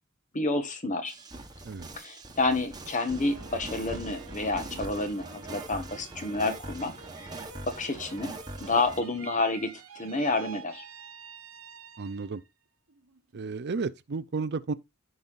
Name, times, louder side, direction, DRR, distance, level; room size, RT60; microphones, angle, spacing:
voice 1, 0.3-1.1 2.0-7.3 7.7-10.8, left 2 dB, 35° left, 1.4 m, -29 dB
sound 1, 1.1-9.0, right 2 dB, 20° right, 1.3 m, -42 dB
sound 2, 2.7-12.5 12.9-13.6, right 6 dB, 70° right, 1.3 m, -49 dB
voice 2, 12.0-12.4 13.3-14.7, right 4 dB, 50° right, 0.5 m, -32 dB
15.0 x 5.5 x 2.5 m
head